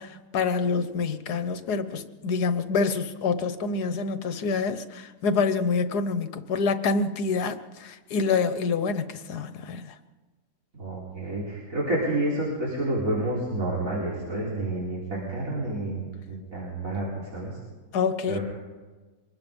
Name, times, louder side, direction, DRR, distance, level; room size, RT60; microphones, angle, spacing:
voice 1, 0.0-9.9 17.9-18.4, left 4 dB, 75° left, 11 dB, 1.6 m, -27 dB
voice 2, 10.7-17.6 18.3-18.4, right 1 dB, 55° right, -4 dB, 4.6 m, -29 dB
24.5 x 21.0 x 5.4 m, 1.3 s
omnidirectional pair, 1.7 m